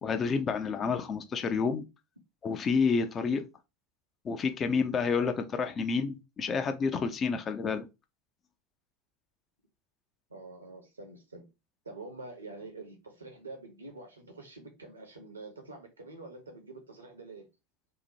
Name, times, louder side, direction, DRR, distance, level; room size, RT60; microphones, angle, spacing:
voice 1, 0.0-1.8 2.4-3.5 4.2-7.9, left 5 dB, 30° left, 0.4 m, -29 dB
voice 2, 10.3-11.5 11.8-17.5, right 3 dB, 80° right, 0.8 m, -46 dB
2.9 x 2.1 x 2.7 m
figure-of-eight pair, 80°, 0 cm